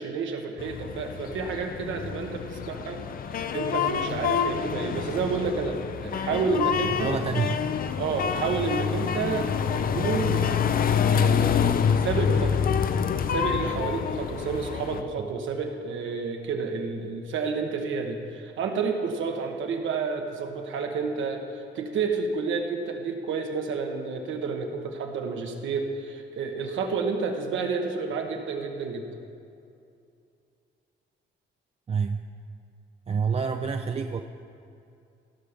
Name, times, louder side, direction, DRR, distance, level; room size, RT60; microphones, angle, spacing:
voice 1, 0.0-3.0 3.3-7.1 8.0-12.6 13.3-29.1, right 4 dB, 75° right, 3 dB, 1.3 m, -30 dB
sound 1, 0.6-15.0, left 7 dB, 45° left, 0.5 m, -27 dB
voice 2, 6.9-7.6 15.2-15.3 31.9-32.3 33.1-34.2, right 5 dB, 30° right, 6 dB, 0.4 m, -28 dB
17.0 x 5.8 x 5.1 m, 2.5 s
cardioid pair, 90°, 20 cm